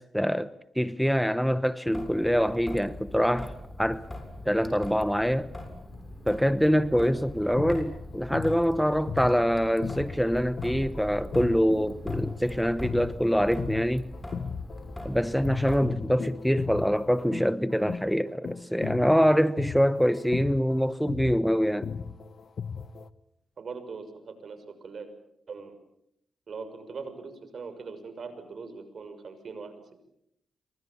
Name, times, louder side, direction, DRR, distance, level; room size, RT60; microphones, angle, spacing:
voice 1, 0.0-4.1 4.4-5.5 6.3-14.1 15.0-21.9, equal, ahead, 1.0 m, -25 dB
Traffic noise roadway noise / Drip / Trickle dribble, 1.9-15.9, left 1 dB, 15° left, 7.1 m, -41 dB
sound 1, 2.3-5.2 6.4-10.3 11.0-15.0 15.3-17.3, left 5 dB, 85° left, 3.8 m, -56 dB
sound 2, 7.4-15.1 15.4-23.1, left 6 dB, 60° left, 1.2 m, -37 dB
voice 2, 23.6-25.1 25.5-25.7 26.5-29.7, right 5 dB, 60° right, 6.4 m, -41 dB
28.0 x 24.5 x 7.3 m
cardioid pair, 60°, 0 cm